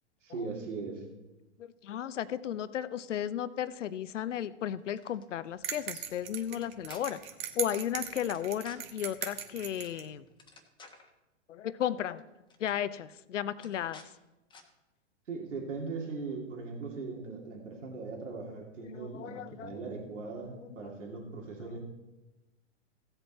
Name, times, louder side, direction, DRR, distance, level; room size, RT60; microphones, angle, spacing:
voice 1, 0.2-1.0 15.3-21.8, right 4 dB, 80° right, -1 dB, 2.7 m, -39 dB
voice 2, 1.6-7.2 7.5-10.2 11.5-12.2 12.6-14.0 18.9-19.8, left 10 dB, 80° left, 15 dB, 0.7 m, -34 dB
sound 1, 4.8-5.3 5.6-5.7 6.5-7.0 8.3-8.8 9.8-10.0 10.3-11.1 12.1-12.2 12.5-12.8 13.6-14.1 14.5-14.6, left 4 dB, 10° left, 1.2 m, -54 dB
sound 2, 5.6-10.1, right 9 dB, 55° right, 1.4 m, -39 dB
15.5 x 8.0 x 4.1 m, 1.0 s
hypercardioid pair, 120°, 36 cm